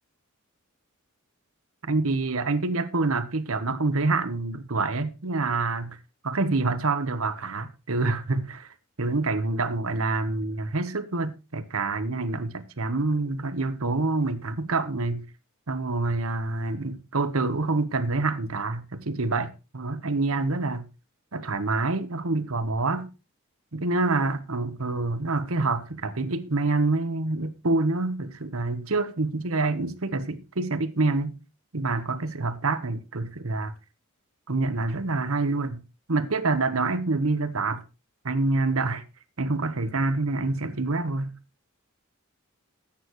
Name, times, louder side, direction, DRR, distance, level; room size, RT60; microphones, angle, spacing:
voice 1, 1.9-6.0 6.2-15.2 15.7-20.9 21.3-23.1 23.7-31.3 31.7-33.7 34.5-35.8 36.1-37.8 38.2-39.0 39.4-41.3, right 3 dB, 70° right, 1.1 m, -27 dB
14.0 x 8.9 x 3.1 m
head